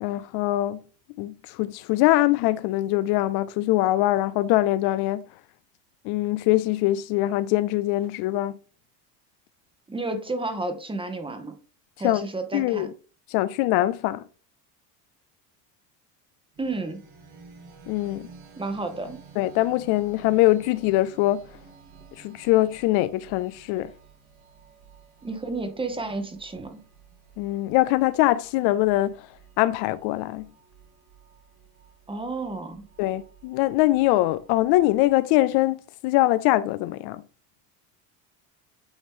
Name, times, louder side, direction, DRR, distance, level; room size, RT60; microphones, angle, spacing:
voice 1, 0.0-0.8 1.2-5.2 6.0-8.5 12.0-12.3 12.5-12.9 13.3-14.2 17.9-18.3 19.4-21.4 22.2-23.9 27.4-29.3 29.6-30.5 33.0-37.2, left 16 dB, 70° left, 0.5 m, -23 dB
voice 2, 9.9-11.6 12.0-12.9 16.6-17.0 18.6-19.2 25.2-26.8 32.1-32.8, right 3 dB, 15° right, 1.0 m, -31 dB
sound 1, 16.5-35.2, right 5 dB, 70° right, 3.0 m, -52 dB
8.9 x 3.0 x 3.6 m
cardioid pair, 120°, 40 cm